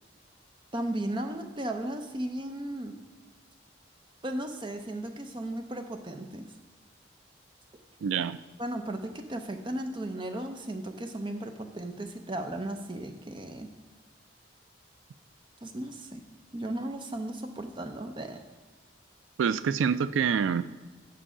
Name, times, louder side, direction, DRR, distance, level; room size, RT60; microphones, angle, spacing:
voice 1, 0.7-3.0 4.2-6.5 8.6-13.7 15.6-16.2 16.5-18.4, right 1 dB, 25° right, 6 dB, 0.6 m, -35 dB
voice 2, 8.0-8.4 19.4-20.6, right 7 dB, 90° right, 14 dB, 0.3 m, -26 dB
7.6 x 5.4 x 4.9 m, 1.3 s
head